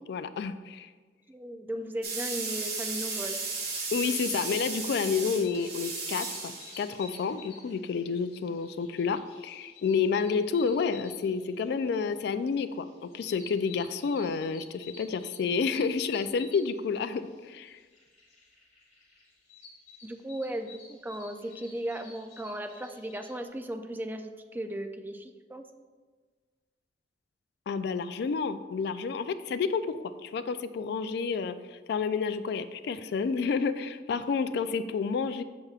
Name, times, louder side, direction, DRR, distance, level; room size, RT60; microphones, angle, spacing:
voice 1, 0.1-0.9 3.9-17.8 27.7-35.4, left 5 dB, 65° left, 12 dB, 0.3 m, -30 dB
voice 2, 1.3-3.4 20.0-25.6, right 1 dB, 10° right, 6 dB, 0.3 m, -36 dB
sound 1, 2.0-7.1, right 4 dB, 60° right, 1.4 m, -35 dB
sound 2, 5.4-23.5, left 4 dB, 45° left, 1.8 m, -52 dB
7.0 x 6.6 x 2.4 m, 1.4 s
head